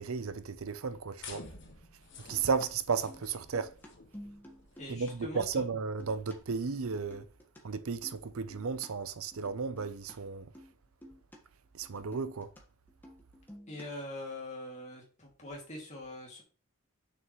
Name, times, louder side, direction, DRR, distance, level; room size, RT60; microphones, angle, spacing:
voice 1, 0.0-1.4 2.3-3.7 4.9-7.2 7.6-10.5 11.7-12.5, right 5 dB, 75° right, 0.6 m, -34 dB
sound 1, 1.2-7.2, left 4 dB, 55° left, 1.5 m, -52 dB
sound 2, 2.1-5.1 5.4-6.4 6.8-7.6 7.9-8.9 9.3-10.2 10.5-10.8 11.0-11.4 11.6-12.6 12.9-14.1, equal, 10° left, 1.4 m, -52 dB
voice 2, 4.8-5.7 13.7-16.4, left 1 dB, 35° left, 2.5 m, -43 dB
7.0 x 6.3 x 3.1 m
head